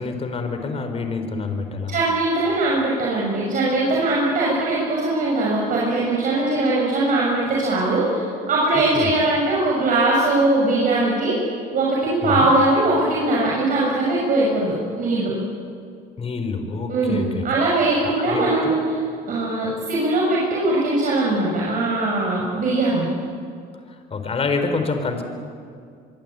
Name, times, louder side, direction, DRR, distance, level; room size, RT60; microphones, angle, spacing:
voice 1, 0.0-2.0 8.9-9.1 12.2-12.5 16.2-17.5 18.0-18.8 24.1-25.2, left 4 dB, 35° left, 7 dB, 4.2 m, -27 dB
voice 2, 1.9-11.4 11.7-15.3 16.9-18.8 19.3-23.1, right 2 dB, 55° right, -4 dB, 6.8 m, -21 dB
24.5 x 24.0 x 9.0 m, 2.3 s
cardioid pair, 110°, 17 cm